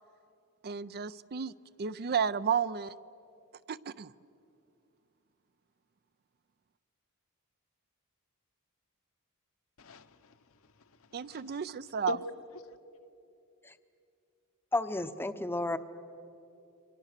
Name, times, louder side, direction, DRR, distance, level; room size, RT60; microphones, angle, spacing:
voice 1, 0.6-1.5 1.8-3.0 3.7-4.1 11.1-12.2, right 7 dB, 45° right, 0.5 m, -32 dB
voice 2, 9.8-11.6 12.1-12.2 12.5-12.8, left 2 dB, 70° left, 1.1 m, -42 dB
voice 3, 14.7-15.8, left 2 dB, 10° left, 0.8 m, -32 dB
29.5 x 24.0 x 6.7 m
head